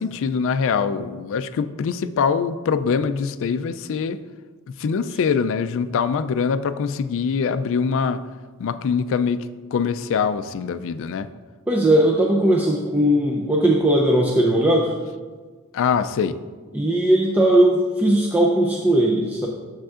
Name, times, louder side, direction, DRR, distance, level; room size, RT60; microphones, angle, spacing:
voice 1, 0.0-4.2 4.7-8.2 8.6-11.3 15.7-16.4, left 6 dB, 65° left, 12 dB, 0.3 m, -23 dB
voice 2, 11.7-14.9 16.7-19.5, right 1 dB, 10° right, -2 dB, 0.5 m, -18 dB
10.0 x 7.3 x 2.4 m, 1.4 s
head